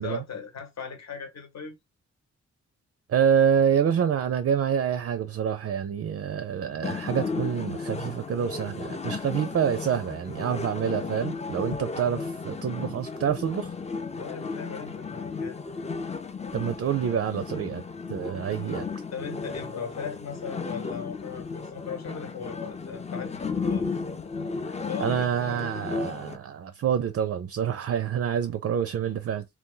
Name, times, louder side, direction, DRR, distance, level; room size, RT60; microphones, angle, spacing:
voice 1, 0.0-1.8 14.1-15.6 19.1-23.9 24.9-25.5, left 6 dB, 65° left, 1.0 m, -38 dB
voice 2, 3.1-13.7 16.5-17.8 18.1-18.9 25.0-29.5, right 8 dB, 50° right, 0.4 m, -27 dB
sound 1, 6.8-26.4, left 4 dB, 20° left, 0.5 m, -34 dB
2.7 x 2.4 x 3.8 m
cardioid pair, 55°, 30 cm